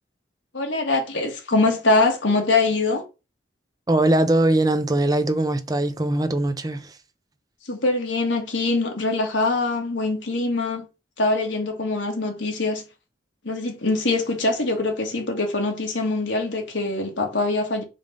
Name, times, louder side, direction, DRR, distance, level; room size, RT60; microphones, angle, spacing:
voice 1, 0.5-3.0 7.7-10.9 11.2-12.8 13.4-17.8, left 3 dB, 85° left, 2.0 m, -23 dB
voice 2, 3.9-6.9, right 1 dB, 20° right, 0.5 m, -21 dB
5.2 x 3.9 x 5.2 m
head